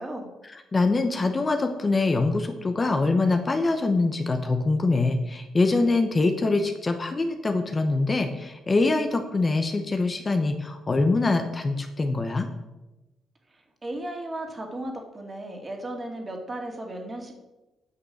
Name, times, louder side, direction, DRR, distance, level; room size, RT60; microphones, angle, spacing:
voice 1, 0.4-12.5, left 3 dB, 30° left, 6 dB, 1.0 m, -24 dB
voice 2, 13.8-17.3, right 1 dB, 25° right, 2 dB, 2.4 m, -35 dB
9.6 x 6.0 x 6.4 m, 1.0 s
cardioid pair, 90°, 0 cm